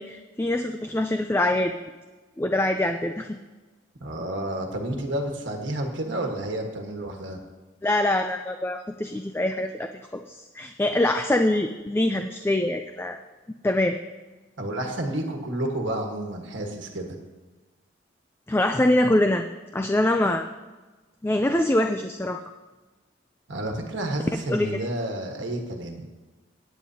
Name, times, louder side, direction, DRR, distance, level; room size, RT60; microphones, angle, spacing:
voice 1, 0.0-1.7 2.4-3.4 7.8-13.2 13.6-14.0 18.5-19.4 19.7-20.5 21.2-22.4 24.5-24.7, left 1 dB, 10° left, 6 dB, 0.3 m, -24 dB
voice 2, 4.0-7.4 14.6-17.2 23.5-26.1, right 1 dB, 70° right, 2 dB, 1.4 m, -30 dB
17.5 x 9.2 x 2.8 m, 1.2 s
head